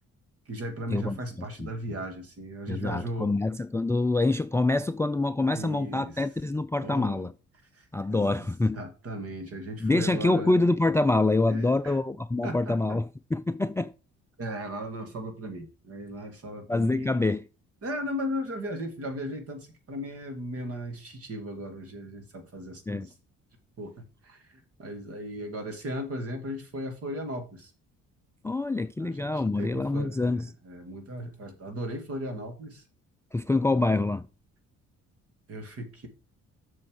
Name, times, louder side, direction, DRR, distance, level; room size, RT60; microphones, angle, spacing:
voice 1, 0.5-3.3 5.5-6.1 6.8-7.3 7.7-7.9 8.1-8.4 8.7-10.6 11.5-12.0 12.4-13.0 14.4-17.2 17.8-23.1 23.8-23.9 24.2-27.7 29.0-32.8 35.5-36.1, equal, 50° right, 2.6 m, -37 dB
voice 2, 2.7-7.3 7.9-8.8 9.8-13.9 16.7-17.4 22.9-23.1 28.4-30.5 33.3-34.3, left 2 dB, 10° left, 0.3 m, -26 dB
7.5 x 6.3 x 4.9 m
cardioid pair, 90°, 30 cm